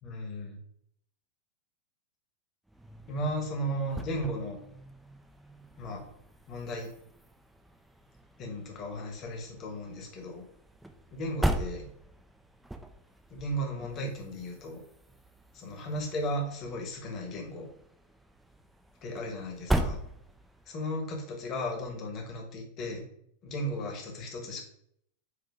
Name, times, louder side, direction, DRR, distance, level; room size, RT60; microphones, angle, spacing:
voice 1, 0.0-0.6 3.1-4.6 5.8-6.0 6.5-6.9 8.4-10.4 11.1-11.9 13.3-14.8 15.5-17.7 19.0-20.0 20.7-23.0 23.4-24.6, equal, 35° left, 2 dB, 1.2 m, -35 dB
sound 1, 2.7-20.7, right 1 dB, 5° right, 0.4 m, -39 dB
5.0 x 2.7 x 3.5 m, 0.69 s
figure-of-eight pair, 90°, 0 cm